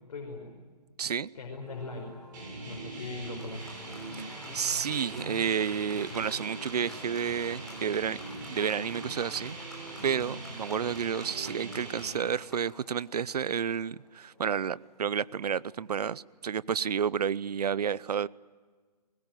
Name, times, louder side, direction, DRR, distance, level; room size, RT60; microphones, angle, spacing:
voice 1, 0.1-0.5 1.3-2.1 2.6-3.7, left 3 dB, 55° left, 1 dB, 5.4 m, -40 dB
voice 2, 1.0-1.3 4.5-8.2 8.5-9.6 10.0-18.3, right 7 dB, 70° right, 22 dB, 0.7 m, -30 dB
Applause, 1.5-15.9, left 1 dB, ahead, 3.7 m, -50 dB
sound 1, 2.3-12.1, right 2 dB, 30° right, 7.2 m, -41 dB
23.0 x 21.0 x 9.2 m, 1.5 s
hypercardioid pair, 160°, 21 cm